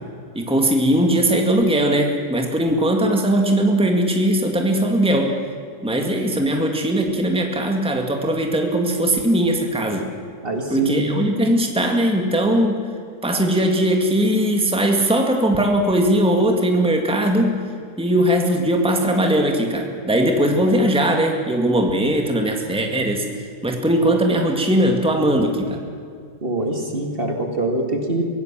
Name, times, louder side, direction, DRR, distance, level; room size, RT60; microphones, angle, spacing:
voice 1, 0.3-5.3 5.8-10.1 10.7-12.8 13.2-17.6 18.0-23.2 23.6-25.8, right 1 dB, 5° right, 2 dB, 2.0 m, -19 dB
voice 2, 10.4-11.1 20.7-20.8 26.4-28.2, right 1 dB, 40° right, 3 dB, 2.5 m, -24 dB
25.0 x 17.0 x 7.5 m, 2.2 s
omnidirectional pair, 1.5 m